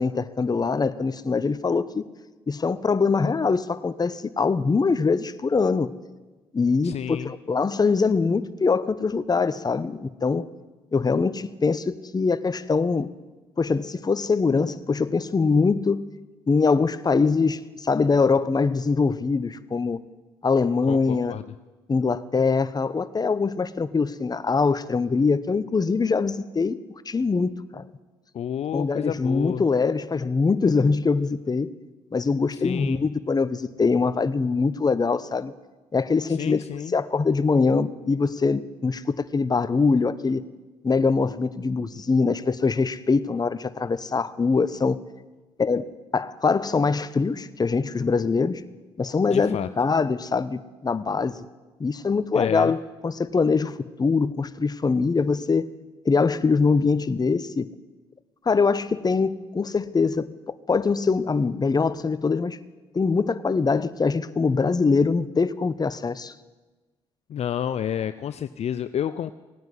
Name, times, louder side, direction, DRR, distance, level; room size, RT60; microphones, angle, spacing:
voice 1, 0.0-2.0 2.5-5.9 6.5-10.5 10.9-13.1 13.6-16.1 16.5-20.0 20.4-21.4 21.9-26.8 27.1-27.8 28.7-31.7 32.1-35.5 35.9-40.4 40.8-45.0 45.6-48.6 49.0-51.3 51.8-55.7 56.0-57.7 58.5-60.3 60.7-62.6 62.9-66.3, left 4 dB, 30° left, 14 dB, 0.9 m, -23 dB
voice 2, 6.8-7.3 20.9-21.4 28.3-29.6 32.6-33.0 36.4-36.9 49.3-49.7 52.3-52.7 67.3-69.3, left 9 dB, 50° left, 12 dB, 0.5 m, -30 dB
17.0 x 9.4 x 7.7 m, 1.2 s
hypercardioid pair, 50°, 14 cm